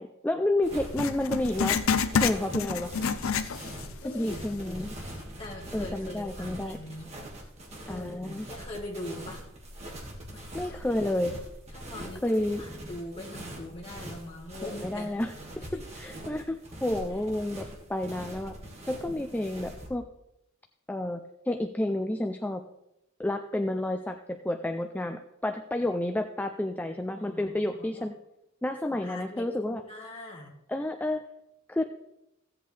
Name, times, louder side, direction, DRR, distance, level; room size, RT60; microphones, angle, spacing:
voice 1, 0.0-1.8 2.2-2.9 4.0-4.9 5.7-6.8 7.9-8.5 10.5-11.3 12.2-12.6 14.6-15.6 16.0-18.5 18.9-20.0 20.9-21.2 21.5-22.6 23.2-28.1 28.6-29.8 30.7-31.2 31.7-31.8, left 1 dB, 10° left, 6 dB, 0.4 m, -30 dB
sound 1, 0.6-19.9, right 1 dB, 30° right, 1.9 m, -43 dB
Writing, 0.9-3.9 4.3-4.4 5.1-5.2, left 6 dB, 75° left, 0.6 m, -28 dB
voice 2, 4.0-4.9 5.4-7.1 7.8-9.5 10.3-10.8 11.7-15.5 27.1-28.1 29.0-30.5, left 1 dB, 25° left, -3 dB, 2.3 m, -42 dB
15.5 x 7.8 x 3.3 m, 0.87 s
head